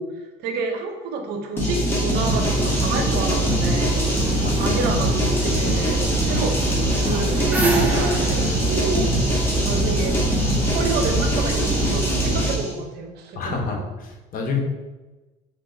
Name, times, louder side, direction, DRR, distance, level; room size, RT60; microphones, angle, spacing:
voice 1, 0.0-4.0 4.6-9.1 9.6-10.2 10.7-13.6, right 3 dB, 65° right, 4 dB, 0.6 m, -29 dB
sound 1, 1.6-12.7, right 1 dB, 15° left, 1.1 m, -22 dB
sound 2, 2.1-12.3, right 1 dB, 30° right, 1.3 m, -28 dB
voice 2, 4.4-4.8 13.3-14.6, left 4 dB, 50° left, 2 dB, 0.7 m, -28 dB
sound 3, 7.5-10.2, right 3 dB, 10° right, 0.6 m, -26 dB
3.3 x 2.8 x 2.5 m, 1.1 s
supercardioid pair, 85°, 18 cm